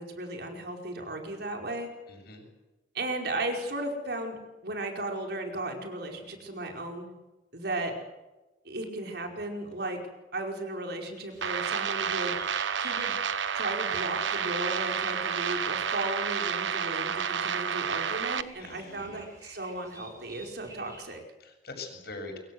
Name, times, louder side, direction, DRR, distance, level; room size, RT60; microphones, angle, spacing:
voice 1, 0.0-1.9 2.9-4.4 4.6-7.1 7.5-7.9 8.6-10.0 10.3-12.4 12.8-13.2 13.5-21.2, right 2 dB, 60° right, 3 dB, 5.0 m, -35 dB
voice 2, 2.1-2.4 18.6-19.2 21.4-22.4, left 3 dB, 55° left, 4 dB, 7.5 m, -43 dB
sound 1, 11.3-21.0, right 1 dB, 20° right, 7.5 m, -53 dB
sound 2, 11.4-18.4, right 7 dB, 85° right, 1.2 m, -30 dB
26.0 x 24.0 x 7.9 m, 1.1 s
head